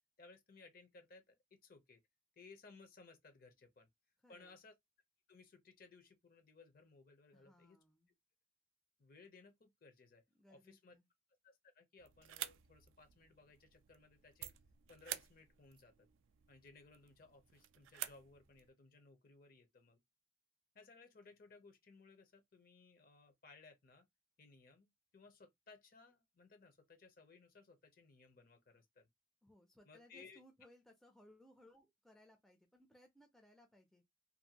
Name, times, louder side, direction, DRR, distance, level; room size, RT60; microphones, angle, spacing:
voice 1, 0.2-1.4 1.6-2.0 2.4-3.9 4.3-4.7 5.3-7.8 9.0-10.2 10.5-11.0 11.4-14.5 14.9-16.1 16.5-20.0 20.7-24.1 24.4-29.1 29.8-30.4, left 4 dB, 45° left, 0.6 m, -62 dB
voice 2, 4.2-4.6 7.3-8.1 10.3-11.1 29.4-34.0, equal, ahead, 0.4 m, -65 dB
sound 1, 12.0-18.7, right 13 dB, 75° right, 0.3 m, -51 dB
2.6 x 2.6 x 2.8 m
head